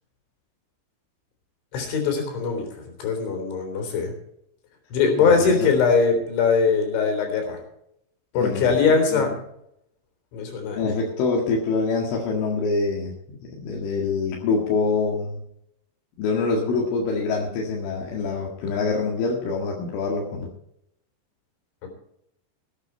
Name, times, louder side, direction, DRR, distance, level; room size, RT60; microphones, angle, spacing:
voice 1, 1.7-4.1 4.9-7.6 8.3-9.3 10.3-10.9, left 5 dB, 70° left, 4 dB, 5.9 m, -21 dB
voice 2, 5.2-5.7 8.4-8.6 9.1-9.2 10.8-13.2 13.4-15.4 16.2-20.5, left 4 dB, 85° left, -2 dB, 4.5 m, -25 dB
19.5 x 9.7 x 4.4 m, 0.76 s
omnidirectional pair, 5.5 m